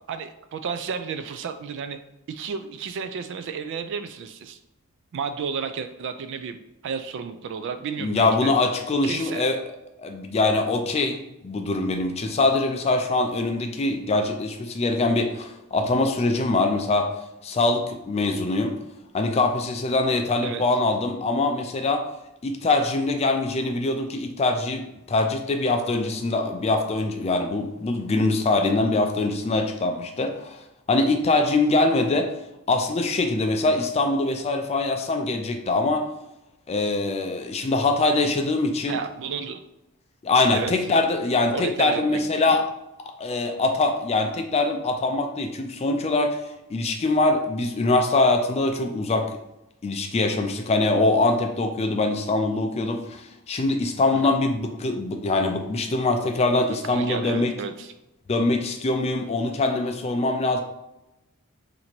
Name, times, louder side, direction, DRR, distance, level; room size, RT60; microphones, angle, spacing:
voice 1, 0.1-2.0 2.3-4.6 5.1-6.6 6.8-8.5 9.0-9.5 20.4-20.6 38.9-39.6 40.5-40.7 41.5-42.2 54.1-54.2 56.9-57.9, right 6 dB, 60° right, 9 dB, 0.3 m, -32 dB
voice 2, 8.0-9.6 10.0-17.1 17.4-18.8 19.1-22.1 22.4-30.6 30.9-32.3 32.7-36.1 36.7-39.0 40.2-42.6 43.2-46.4 46.7-49.4 49.8-57.5 58.3-60.6, left 2 dB, 30° left, 5 dB, 0.4 m, -23 dB
2.9 x 2.6 x 4.3 m, 0.91 s
head